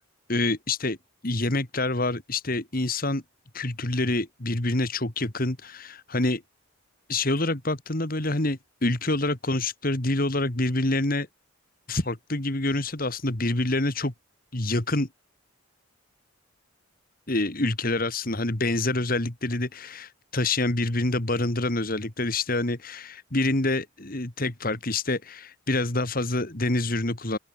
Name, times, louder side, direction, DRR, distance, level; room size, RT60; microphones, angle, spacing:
voice 1, 0.3-1.0 1.2-3.2 3.5-6.4 7.1-11.3 11.9-14.1 14.5-15.1 17.3-27.4, left 2 dB, 40° left, 2.1 m, -26 dB
open air
head